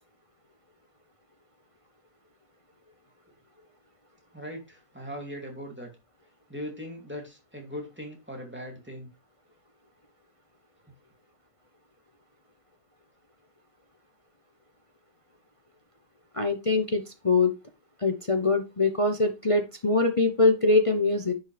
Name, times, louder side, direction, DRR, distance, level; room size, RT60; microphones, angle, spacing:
voice 1, 4.3-5.9 6.5-9.1, equal, 5° right, 1 dB, 2.6 m, -39 dB
voice 2, 16.3-17.5 18.0-21.3, left 3 dB, 45° left, 6 dB, 0.4 m, -23 dB
10.5 x 5.7 x 3.4 m, 0.26 s
omnidirectional pair, 1.9 m